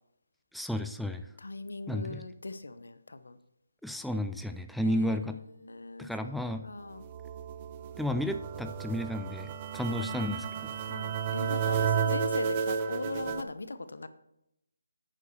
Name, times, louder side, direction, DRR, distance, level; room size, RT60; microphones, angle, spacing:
voice 1, 0.5-1.3 1.9-2.2 3.8-5.4 6.0-6.7 8.0-10.7, equal, ahead, 7 dB, 0.4 m, -33 dB
voice 2, 1.4-3.4 4.8-5.2 5.6-6.3 6.6-7.1 10.0-10.1 10.8-14.1, left 2 dB, 75° left, 12 dB, 0.9 m, -39 dB
sound 1, 6.9-13.4, right 7 dB, 30° right, 0.7 m, -32 dB
10.5 x 9.1 x 4.5 m, 0.82 s
figure-of-eight pair, 150°, 0 cm